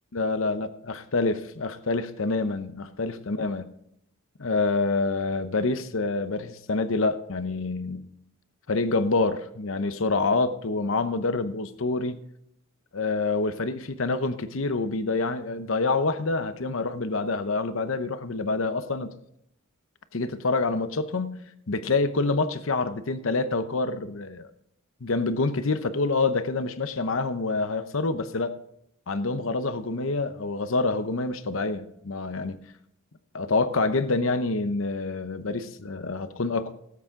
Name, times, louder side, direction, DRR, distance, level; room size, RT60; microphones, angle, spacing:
voice 1, 0.1-3.7 4.4-8.1 8.7-12.2 12.9-19.1 20.1-24.5 25.0-28.5 29.1-32.6 33.3-36.7, left 3 dB, 65° left, 11 dB, 0.8 m, -27 dB
18.0 x 8.3 x 3.8 m, 0.73 s
head